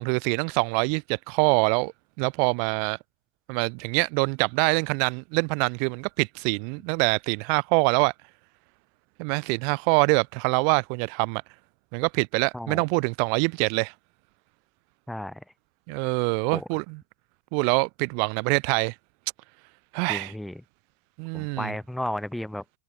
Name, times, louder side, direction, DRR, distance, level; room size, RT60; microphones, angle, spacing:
voice 1, 0.0-3.0 3.5-8.1 9.2-11.4 11.9-13.9 15.9-17.0 17.5-18.9 19.9-20.3 21.2-21.7, right 40 dB or more, 65° right, 1.9 m, -24 dB
voice 2, 12.5-12.8 15.1-15.4 16.5-16.8 20.1-20.6 21.3-22.6, left 1 dB, 5° left, 3.7 m, -33 dB
hypercardioid pair, 105°, 0 cm